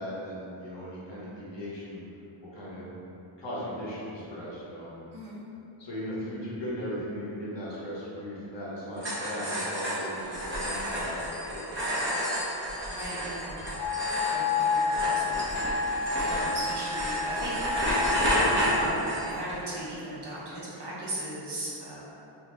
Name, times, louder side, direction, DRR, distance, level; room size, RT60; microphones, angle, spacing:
voice 1, 0.0-2.0 2.5-2.9 3.4-4.9 5.8-11.9 16.2-16.5, equal, 60° left, -7 dB, 0.9 m, -37 dB
sound 1, 9.0-19.5, equal, 25° right, 0.8 m, -30 dB
voice 2, 12.9-13.6 14.2-17.5 17.8-18.3 18.7-22.0, right 1 dB, 55° right, -7 dB, 0.9 m, -38 dB
Wind instrument woodwind instrument, 13.8-19.0, left 5 dB, 30° left, 0.8 m, -30 dB
2.7 x 2.6 x 3.2 m, 2.8 s
wide cardioid pair, 100°, 49 cm